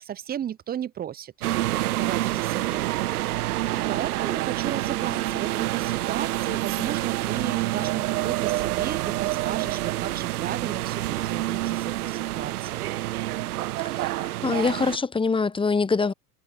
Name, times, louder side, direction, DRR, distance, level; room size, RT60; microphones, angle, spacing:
voice 1, 0.0-1.3 1.7-3.0 3.7-12.9, right 10 dB, 20° right, 0.6 m, -34 dB
sound 1, 1.4-15.0, right 16 dB, 75° right, 1.4 m, -27 dB
voice 2, 13.9-16.1, left 4 dB, 10° left, 1.0 m, -24 dB
hypercardioid pair, 80°, 45 cm